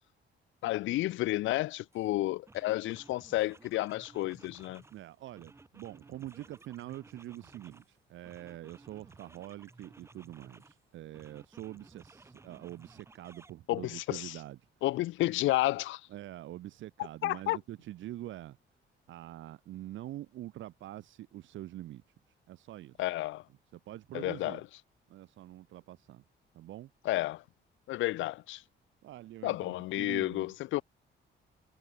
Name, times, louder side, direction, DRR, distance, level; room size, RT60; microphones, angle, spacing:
voice 1, 0.6-4.8 13.7-14.3 14.8-16.0 17.2-17.6 23.0-23.4 24.1-24.6 27.1-27.4 27.9-28.6 29.4-30.8, left 17 dB, 85° left, 0.5 m, -31 dB
sound 1, 1.9-2.1 2.5-5.0 5.3-7.9 8.2-10.8 11.1-13.5, right 3 dB, 15° right, 1.8 m, -57 dB
voice 2, 4.9-14.6 16.1-18.6 19.1-22.0 22.5-23.1 23.7-24.6 25.1-26.2 26.5-26.9 29.0-30.5, right 14 dB, 90° right, 2.2 m, -45 dB
cardioid pair, 175°, 19 cm